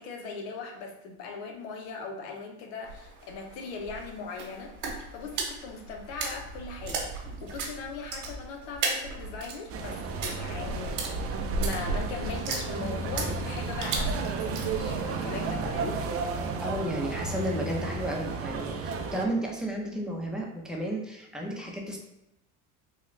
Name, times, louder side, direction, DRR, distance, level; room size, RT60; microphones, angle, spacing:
voice 1, 0.0-4.7 5.1-11.0 11.6-16.0, left 4 dB, 85° left, 3 dB, 0.8 m, -39 dB
sound 1, 2.8-15.9, right 3 dB, 85° right, 1.1 m, -36 dB
sound 2, 9.7-19.2, right 4 dB, 40° right, 0.5 m, -33 dB
voice 2, 16.6-22.0, right 1 dB, ahead, -2 dB, 0.7 m, -33 dB
3.7 x 2.3 x 3.2 m, 0.88 s
supercardioid pair, 110°, 35 cm